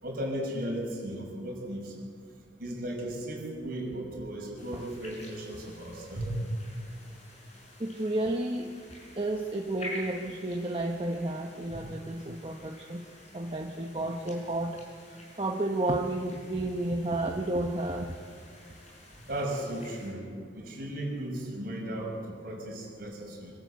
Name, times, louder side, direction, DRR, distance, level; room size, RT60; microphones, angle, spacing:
voice 1, 0.0-1.9 2.6-6.6 11.7-11.8 19.1-20.2 20.5-23.5, right 1 dB, 50° right, -1 dB, 5.9 m, -35 dB
sound 1, 4.6-20.1, left 1 dB, 35° left, 6.3 m, -49 dB
voice 2, 7.8-8.7 9.2-13.0 13.3-14.9 15.1-18.1, right 1 dB, 30° right, 2 dB, 1.0 m, -31 dB
25.5 x 13.0 x 8.3 m, 2.1 s
head